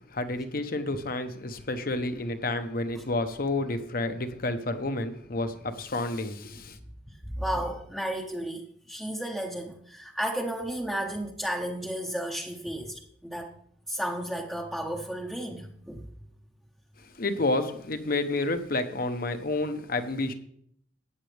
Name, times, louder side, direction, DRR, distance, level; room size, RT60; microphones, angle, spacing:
voice 1, 0.1-6.8 17.0-20.3, left 2 dB, 55° left, 1.0 m, -30 dB
voice 2, 7.1-13.5 13.9-16.0, right 1 dB, ahead, 0.9 m, -33 dB
14.0 x 9.0 x 3.4 m
head